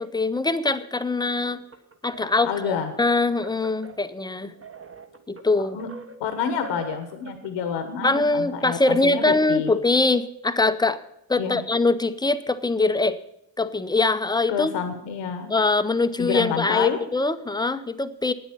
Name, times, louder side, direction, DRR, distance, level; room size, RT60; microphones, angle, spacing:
voice 1, 0.0-1.6 2.0-4.5 5.3-5.8 8.0-11.0 11.3-13.2 13.6-14.7 15.5-18.3, left 3 dB, 10° left, 12 dB, 0.6 m, -23 dB
sound 1, 1.5-7.7, right 2 dB, 30° right, 1.2 m, -44 dB
voice 2, 2.4-2.9 5.7-5.9 6.2-9.7 11.4-11.6 14.5-15.5 16.2-17.0, left 7 dB, 80° left, 7 dB, 1.2 m, -28 dB
9.4 x 8.1 x 7.2 m, 0.77 s
supercardioid pair, 75°, 44 cm